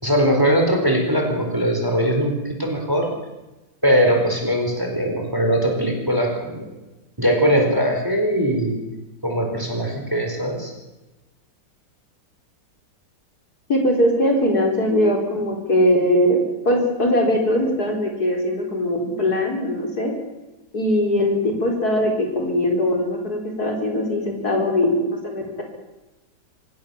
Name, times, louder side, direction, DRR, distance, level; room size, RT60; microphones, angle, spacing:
voice 1, 0.0-3.1 3.8-6.7 7.2-8.8 9.2-10.7, equal, 10° right, 2 dB, 4.6 m, -20 dB
voice 2, 13.7-20.1 20.7-25.6, left 1 dB, 60° left, 1 dB, 4.8 m, -21 dB
25.5 x 18.0 x 7.2 m, 1.1 s
omnidirectional pair, 1.9 m